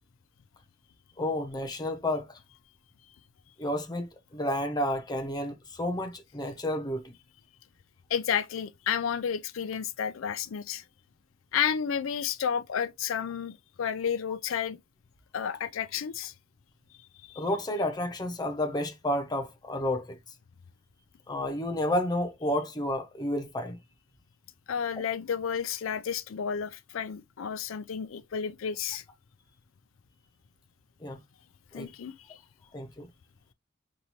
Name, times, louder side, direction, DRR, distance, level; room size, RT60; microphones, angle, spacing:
voice 1, 1.2-2.4 3.6-7.1 17.4-20.2 21.3-23.8 31.0-31.2 31.7-31.9 32.7-33.1, left 1 dB, 20° left, 0.8 m, -31 dB
voice 2, 8.1-10.8 11.5-14.8 15.3-16.3 17.3-17.4 24.7-29.0 31.7-32.4, left 7 dB, 80° left, 0.4 m, -31 dB
5.4 x 2.6 x 3.1 m
head